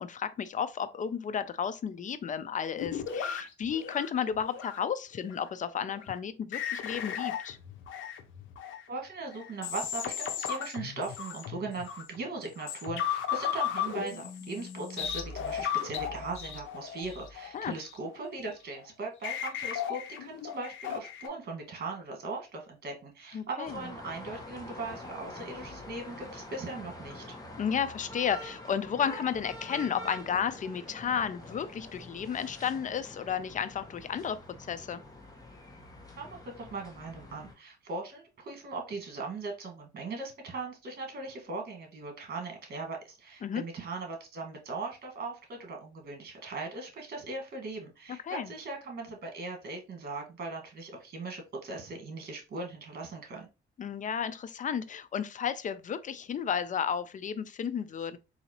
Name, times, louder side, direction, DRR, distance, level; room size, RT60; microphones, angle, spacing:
voice 1, 0.0-7.6 17.5-17.7 23.3-23.8 27.6-34.4 34.7-35.0 43.4-43.6 48.3-48.5 53.8-58.2, left 7 dB, 40° left, 0.4 m, -33 dB
sound 1, 2.8-4.8 5.1-5.5 5.8-6.1 6.5-8.8 9.3-12.2 12.6-18.4 18.8-18.9 19.2-21.3, left 9 dB, 75° left, 0.7 m, -36 dB
voice 2, 8.9-27.2 36.1-53.5, right 3 dB, 50° right, 1.5 m, -39 dB
sound 2, 23.6-37.5, left 1 dB, 20° left, 1.1 m, -46 dB
3.9 x 2.7 x 2.9 m
cardioid pair, 90°, 20 cm